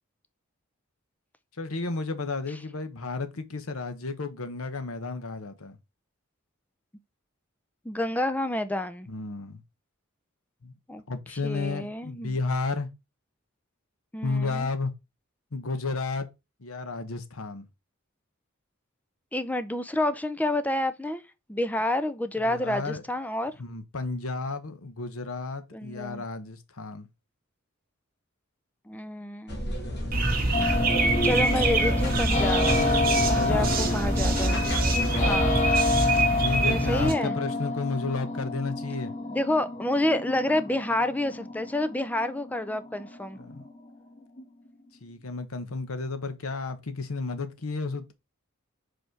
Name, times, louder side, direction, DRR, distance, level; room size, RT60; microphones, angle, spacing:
voice 1, 1.6-5.8 9.1-9.6 10.6-10.7 11.1-12.9 14.2-14.9 15.5-16.3 16.6-17.7 22.4-23.0 23.6-27.1 33.2-33.7 36.4-39.2 43.4-43.6 45.0-48.1, left 3 dB, 75° left, 1.0 m, -32 dB
voice 2, 7.8-9.1 10.9-11.0 11.4-12.4 14.1-14.7 19.3-21.2 21.5-23.5 25.7-26.2 28.9-29.8 31.2-32.7 33.3-34.6 35.3-35.6 36.7-37.3 39.3-43.4, left 1 dB, 5° left, 0.5 m, -29 dB
sound 1, 29.5-35.4, equal, 55° left, 2.1 m, -31 dB
sound 2, 30.1-37.1, right 2 dB, 45° right, 1.5 m, -25 dB
sound 3, 30.5-44.4, left 3 dB, 35° left, 1.4 m, -29 dB
5.3 x 4.2 x 4.6 m
head